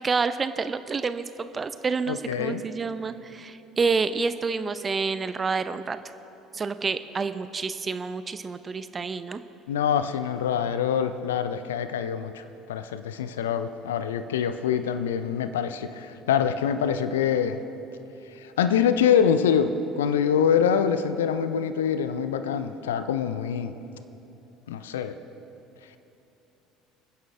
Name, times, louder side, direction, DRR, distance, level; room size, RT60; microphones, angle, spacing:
voice 1, 0.0-6.0 6.5-9.4, right 4 dB, 25° right, 12 dB, 0.7 m, -28 dB
voice 2, 2.1-2.6 9.7-17.6 18.4-23.7 24.7-25.2, left 8 dB, 75° left, 11 dB, 0.6 m, -25 dB
30.0 x 10.0 x 3.4 m, 3.0 s
figure-of-eight pair, 60°, 0 cm